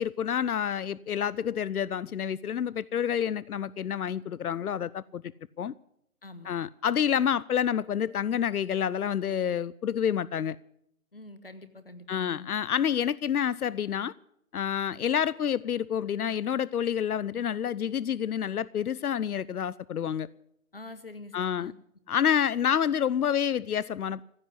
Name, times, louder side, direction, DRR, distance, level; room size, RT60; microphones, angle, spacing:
voice 1, 0.0-5.2 5.6-5.7 6.4-10.6 12.1-14.1 14.5-20.3 21.3-21.7 22.1-24.2, left 8 dB, 85° left, 0.5 m, -28 dB
voice 2, 11.1-12.5 20.7-21.7, left 2 dB, 40° left, 1.1 m, -45 dB
15.0 x 8.2 x 9.7 m
figure-of-eight pair, 180°, 44 cm